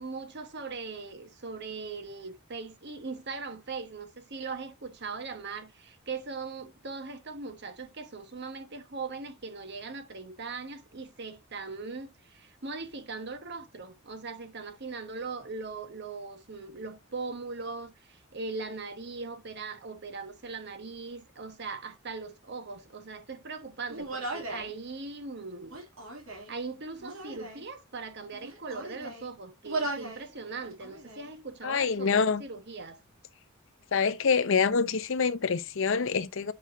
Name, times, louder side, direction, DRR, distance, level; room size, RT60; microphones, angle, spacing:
voice 1, 0.0-25.8 26.5-33.0, right 4 dB, 55° right, 1.2 m, -40 dB
Human voice, 23.9-24.7 25.6-26.5 27.0-27.7 28.3-29.3 29.6-30.2 30.6-31.3, right 2 dB, 75° right, 2.7 m, -37 dB
voice 2, 31.6-32.4 33.9-36.5, left 5 dB, 65° left, 0.7 m, -26 dB
8.5 x 5.3 x 2.6 m
head